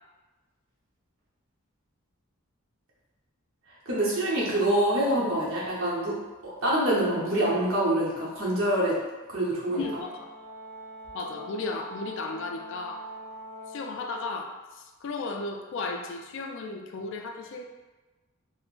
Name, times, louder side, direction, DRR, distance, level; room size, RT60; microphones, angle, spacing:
voice 1, 3.9-6.2 6.4-9.0 9.3-9.8, right 1 dB, 70° right, -6 dB, 0.9 m, -25 dB
voice 2, 9.7-10.3 11.1-13.0 13.7-14.6 15.0-17.7, left 3 dB, 60° left, 4 dB, 0.3 m, -34 dB
Brass instrument, 9.7-13.9, right 1 dB, 40° right, 0.4 m, -43 dB
3.6 x 2.0 x 2.4 m, 1.2 s
head